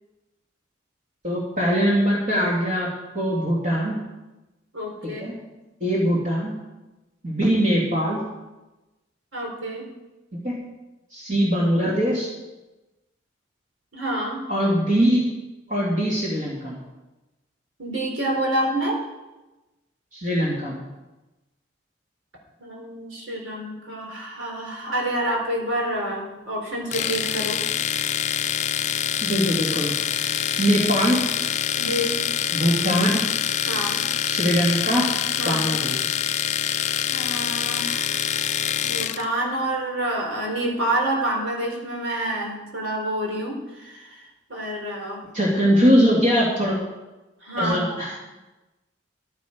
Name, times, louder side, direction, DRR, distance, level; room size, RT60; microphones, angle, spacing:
voice 1, 1.2-3.9 5.2-5.3 5.8-6.5 7.2-8.2 10.3-10.5 11.1-12.3 14.5-15.2 15.7-16.7 20.1-20.7 29.2-29.9 30.6-31.2 32.5-33.2 34.3-35.0 35.4-36.0 45.3-46.8 47.6-48.1, equal, 40° right, -4 dB, 2.5 m, -21 dB
voice 2, 4.7-5.2 9.3-9.9 13.9-14.4 17.8-19.0 22.6-27.6 31.7-32.2 33.7-34.0 35.4-35.7 37.1-38.2 38.8-44.2 44.5-45.2 47.4-48.1, right 1 dB, 80° right, -1 dB, 4.0 m, -28 dB
Domestic sounds home sounds, 26.9-39.2, left 9 dB, 35° left, 0.4 m, -25 dB
14.0 x 9.5 x 5.1 m, 1.1 s
head